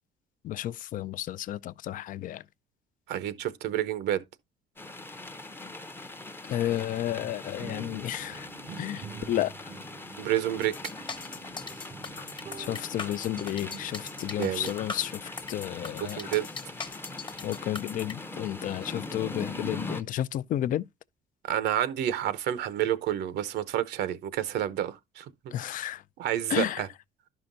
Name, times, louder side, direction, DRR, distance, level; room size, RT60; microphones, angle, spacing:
voice 1, 0.4-2.4 6.4-8.5 8.8-9.7 12.6-16.3 17.4-20.9 25.5-26.0 26.5-26.9, left 12 dB, 50° left, 0.4 m, -32 dB
voice 2, 3.1-4.2 10.2-10.7 14.4-14.7 16.0-16.4 21.5-25.5 26.2-26.9, right 11 dB, 75° right, 0.8 m, -29 dB
sound 1, 4.8-20.0, left 2 dB, 15° left, 0.6 m, -41 dB
sound 2, 7.1-15.3, right 6 dB, 40° right, 0.5 m, -47 dB
sound 3, 10.6-18.1, left 4 dB, 30° left, 1.0 m, -40 dB
11.5 x 5.6 x 2.5 m
cardioid pair, 110°, 17 cm